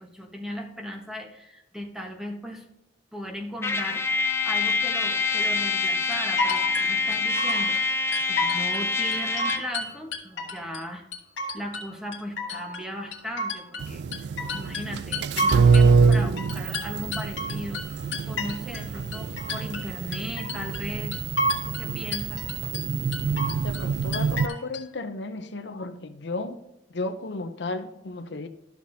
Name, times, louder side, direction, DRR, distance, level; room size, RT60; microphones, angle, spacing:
voice 1, 0.0-2.6 3.1-11.0 11.5-21.2 21.6-22.4, equal, 5° right, 1.2 m, -37 dB
Trumpet, 3.6-9.7, left 4 dB, 15° left, 0.6 m, -26 dB
sound 1, 6.1-7.8 8.1-8.8 9.1-10.8 11.1-11.9 12.1-15.9 16.1-18.9 19.1-19.9 20.1-20.9 21.1-21.9 22.1-22.8 23.1-23.9 24.1-24.8, left 1 dB, 85° left, 1.5 m, -31 dB
sound 2, 13.8-24.5, right 5 dB, 65° right, 0.3 m, -25 dB
voice 2, 23.6-26.6 26.9-28.5, left 2 dB, 65° left, 0.7 m, -34 dB
12.5 x 6.3 x 2.7 m
head